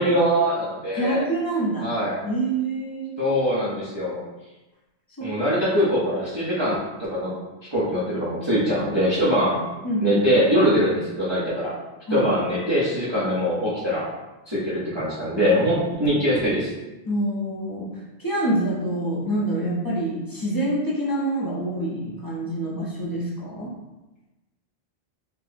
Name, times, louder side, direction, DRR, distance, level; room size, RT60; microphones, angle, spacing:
voice 1, 0.0-1.3 1.8-2.2 3.2-4.2 5.2-7.3 7.7-9.6 10.0-11.7 12.1-14.1 14.5-16.7, equal, 30° right, -9 dB, 0.6 m, -22 dB
voice 2, 0.9-1.9 2.2-3.2 5.2-5.3 9.8-10.2 12.1-12.3 17.1-17.9 18.2-23.7, right 1 dB, 25° left, -6 dB, 0.5 m, -26 dB
4.5 x 2.0 x 2.6 m, 1.1 s
omnidirectional pair, 1.2 m